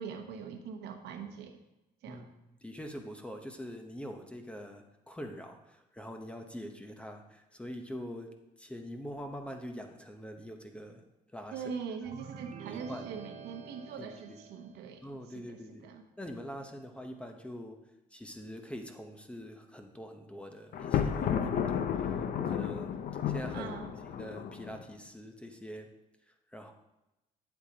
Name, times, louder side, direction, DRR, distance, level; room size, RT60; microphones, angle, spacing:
voice 1, 0.0-1.6 2.0-2.2 11.5-15.1 15.3-16.0 23.5-23.9, right 6 dB, 80° right, 4 dB, 1.1 m, -42 dB
voice 2, 2.6-11.0 11.3-11.7 12.7-13.1 14.0-14.4 15.0-15.9 16.2-22.1 22.5-23.0 23.3-23.8 24.0-25.9 26.5-26.7, equal, 5° left, 4 dB, 0.8 m, -44 dB
sound 1, 12.1-14.9, right 7 dB, 45° right, 0.6 m, -47 dB
Thunder, 20.7-24.8, left 8 dB, 55° left, 0.7 m, -32 dB
8.9 x 8.0 x 2.8 m, 0.96 s
cardioid pair, 110°, 17 cm